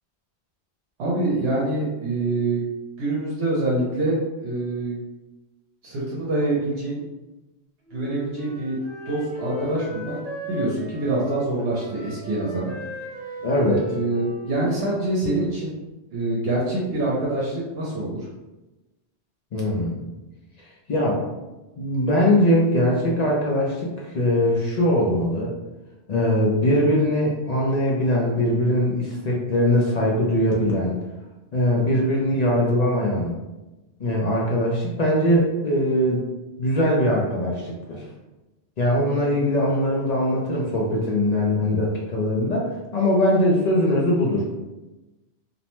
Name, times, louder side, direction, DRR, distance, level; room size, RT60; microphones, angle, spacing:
voice 1, 1.0-2.6 3.0-4.2 4.4-5.0 5.8-7.0 7.9-8.8 9.1-10.2 10.5-12.7 13.7-15.8 16.1-18.2, right 2 dB, 75° right, -6 dB, 0.9 m, -25 dB
Wind instrument woodwind instrument, 7.9-15.6, left 2 dB, 55° right, 0.5 m, -37 dB
voice 2, 13.4-13.8 19.5-20.1 20.9-21.3 21.8-25.5 26.1-31.0 31.5-33.3 34.0-36.2 36.6-38.0 38.8-44.5, left 1 dB, 55° left, -3 dB, 0.5 m, -21 dB
2.6 x 2.1 x 2.9 m, 1.1 s
omnidirectional pair, 1.2 m